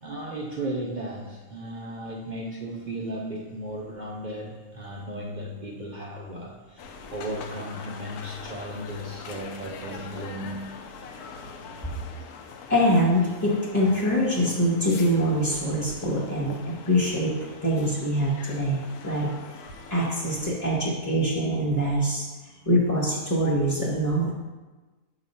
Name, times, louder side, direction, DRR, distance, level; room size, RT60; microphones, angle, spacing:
voice 1, 0.0-10.7, right 1 dB, 70° right, -2 dB, 0.4 m, -35 dB
sound 1, 6.8-20.5, left 4 dB, 85° left, 1.1 m, -43 dB
voice 2, 12.7-17.3 17.6-19.3 19.9-22.3 22.6-24.3, equal, 15° left, -8 dB, 0.8 m, -24 dB
7.1 x 3.0 x 5.4 m, 1.2 s
omnidirectional pair, 1.6 m